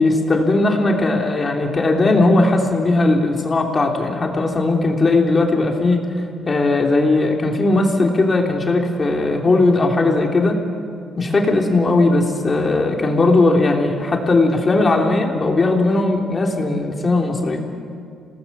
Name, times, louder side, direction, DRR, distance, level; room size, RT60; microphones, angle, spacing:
voice 1, 0.0-6.0 6.5-10.6 11.2-17.6, left 2 dB, 35° left, 1 dB, 3.3 m, -18 dB
27.0 x 19.0 x 7.0 m, 2.4 s
cardioid pair, 90°, 0 cm